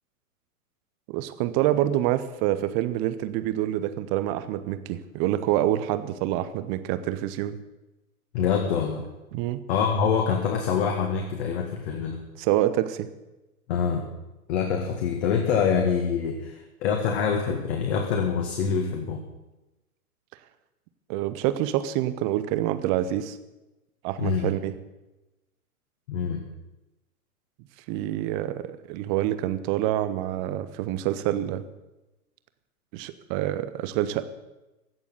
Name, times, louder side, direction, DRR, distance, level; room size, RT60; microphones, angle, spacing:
voice 1, 1.1-7.6 9.3-9.6 12.4-13.1 21.1-23.4 24.0-24.8 27.9-31.6 32.9-34.2, right 13 dB, 15° right, 13 dB, 0.4 m, -27 dB
voice 2, 8.3-9.1 9.7-12.2 13.7-14.1 14.5-19.2 24.2-24.5 26.1-26.4, left 6 dB, 45° left, 3 dB, 2.0 m, -25 dB
16.0 x 7.0 x 9.7 m, 1.0 s
figure-of-eight pair, 115°, 45 cm